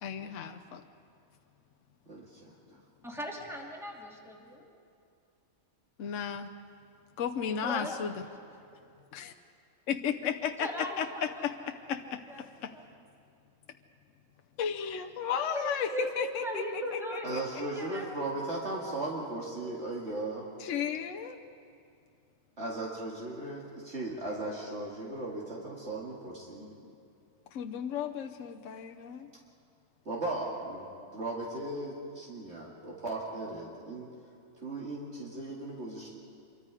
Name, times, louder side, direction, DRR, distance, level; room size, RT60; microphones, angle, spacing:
voice 1, 0.0-0.8 6.0-6.5 7.2-8.2 9.1-9.3 9.9-12.7 14.6-16.8 17.1-17.2 20.6-21.4 26.6-26.7 27.5-29.3, left 7 dB, 65° left, 5 dB, 1.1 m, -34 dB
voice 2, 2.1-2.5 17.2-20.5 22.6-26.7 28.7-28.8 30.1-30.9 31.1-34.1 34.6-36.1, right 2 dB, 55° right, -4 dB, 2.4 m, -37 dB
voice 3, 3.0-4.6 7.6-8.2 10.6-11.3 11.6-11.7 12.3-12.4 12.7-12.8 15.3-18.0, equal, ahead, -2 dB, 2.9 m, -38 dB
26.0 x 23.5 x 4.9 m, 2.5 s
omnidirectional pair, 1.4 m